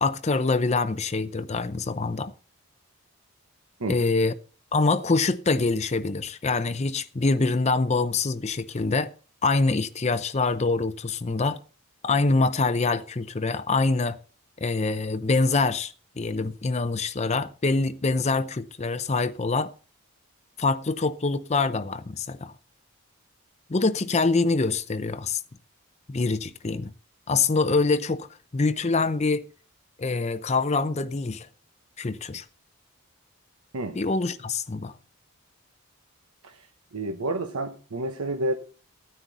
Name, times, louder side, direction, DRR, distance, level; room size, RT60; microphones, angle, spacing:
voice 1, 0.0-2.3 3.9-4.3 4.7-9.1 9.4-11.6 12.0-14.2 14.6-19.7 20.6-22.5 23.7-25.4 26.1-26.9 27.3-28.3 28.5-29.4 30.0-31.5 32.0-32.4 33.9-34.9, left 3 dB, 30° left, 0.6 m, -25 dB
voice 2, 36.9-38.5, right 2 dB, 90° right, 1.1 m, -29 dB
14.0 x 9.8 x 4.1 m
head